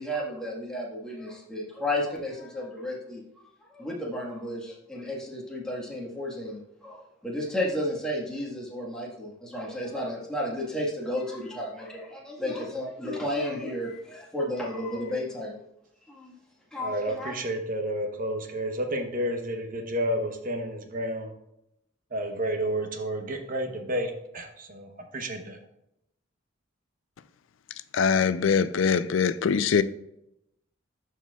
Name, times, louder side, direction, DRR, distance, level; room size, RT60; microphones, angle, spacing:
voice 1, 0.0-3.5 3.7-15.6 16.1-16.3 16.7-17.4, left 1 dB, 5° left, 1.4 m, -33 dB
voice 2, 16.8-21.3 22.1-24.9 25.1-25.6, right 1 dB, 45° right, 0.9 m, -30 dB
voice 3, 27.9-29.8, left 6 dB, 75° left, 0.4 m, -23 dB
13.0 x 4.6 x 2.3 m
head